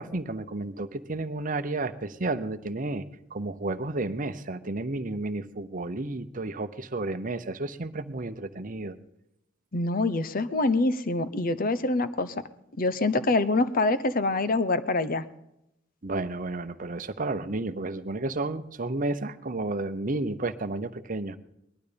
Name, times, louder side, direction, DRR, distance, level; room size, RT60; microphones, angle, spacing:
voice 1, 0.0-3.0 3.3-9.0 16.0-21.4, right 2 dB, 45° right, 10 dB, 0.9 m, -32 dB
voice 2, 9.7-12.4 12.8-15.2, left 2 dB, 45° left, 13 dB, 0.9 m, -25 dB
19.5 x 12.0 x 5.2 m, 0.83 s
head